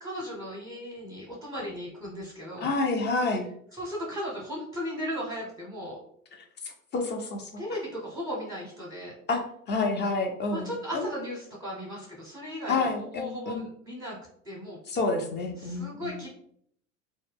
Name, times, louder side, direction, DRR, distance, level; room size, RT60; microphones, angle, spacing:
voice 1, 0.0-2.7 3.7-6.0 7.6-9.2 10.5-14.2 14.4-14.8 15.6-16.3, equal, 5° right, -4 dB, 0.8 m, -36 dB
voice 2, 2.6-3.5 6.9-7.5 9.3-11.1 12.7-13.6 14.9-16.1, left 3 dB, 25° left, 3 dB, 0.6 m, -29 dB
2.2 x 2.1 x 3.3 m, 0.66 s
hypercardioid pair, 80°, 39 cm